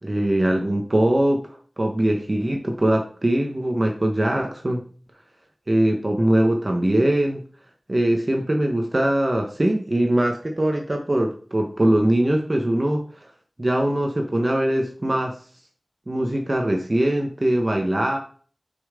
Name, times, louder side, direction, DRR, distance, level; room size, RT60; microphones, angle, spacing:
voice 1, 0.0-4.8 5.7-7.4 7.9-13.0 13.6-15.3 16.1-18.2, right 1 dB, 40° right, 2 dB, 1.1 m, -21 dB
6.8 x 5.7 x 3.7 m, 0.43 s
wide cardioid pair, 45°, 0 cm